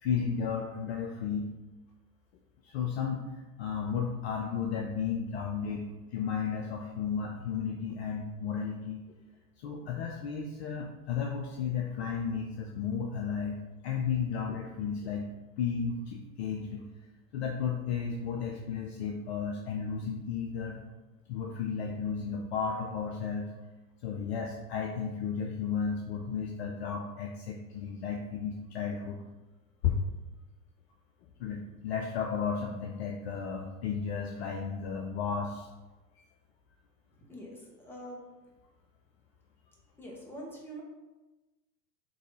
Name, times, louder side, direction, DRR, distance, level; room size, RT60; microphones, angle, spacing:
voice 1, 0.0-1.5 2.6-9.0 9.6-15.3 15.6-16.8 17.3-20.8 21.3-23.5 24.0-29.2 29.8-30.0 31.4-35.7, left 6 dB, 45° left, 1 dB, 0.4 m, -33 dB
voice 2, 37.3-38.2 40.0-40.8, right 1 dB, 5° left, -4 dB, 0.8 m, -44 dB
3.8 x 2.9 x 3.3 m, 1.1 s
figure-of-eight pair, 90°, 49 cm